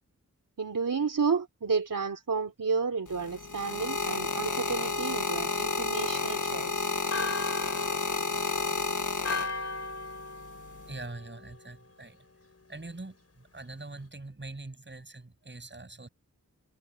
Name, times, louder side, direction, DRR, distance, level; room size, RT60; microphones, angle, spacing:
voice 1, 0.6-6.9, right 5 dB, 80° right, 3.5 m, -31 dB
sound 1, 3.1-9.9 10.7-11.0, left 3 dB, 70° left, 1.7 m, -31 dB
Church bell, 6.1-11.8, left 3 dB, 50° left, 4.2 m, -38 dB
voice 2, 10.9-12.3 12.7-16.1, right 2 dB, 35° right, 7.1 m, -43 dB
wide cardioid pair, 80°, 32 cm